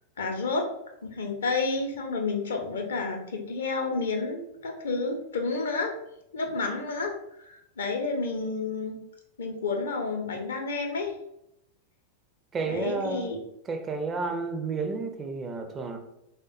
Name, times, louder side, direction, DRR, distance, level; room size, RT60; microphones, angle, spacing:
voice 1, 0.2-0.7 1.0-5.9 6.3-7.1 7.4-9.0 9.4-11.1 12.6-13.4, left 3 dB, 65° left, 3 dB, 0.5 m, -30 dB
voice 2, 12.5-13.3 13.6-16.0, right 4 dB, 25° right, 5 dB, 0.4 m, -31 dB
3.4 x 2.1 x 2.5 m, 0.80 s
figure-of-eight pair, 90°, 0 cm